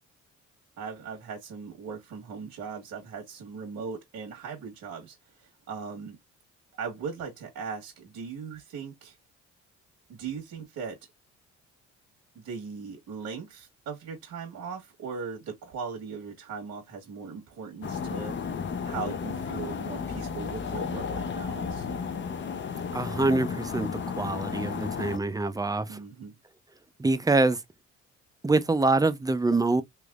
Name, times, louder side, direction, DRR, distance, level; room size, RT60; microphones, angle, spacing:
voice 1, 0.8-6.2 6.7-9.2 10.1-11.0 12.3-18.4 18.8-21.9 25.9-26.3, right 5 dB, 70° right, 1.4 m, -39 dB
sound 1, 17.8-25.2, left 6 dB, 40° left, 0.6 m, -33 dB
voice 2, 22.9-26.0 27.0-27.6 28.4-29.8, right 3 dB, 10° right, 0.5 m, -25 dB
3.4 x 3.1 x 2.4 m
cardioid pair, 90°, 30 cm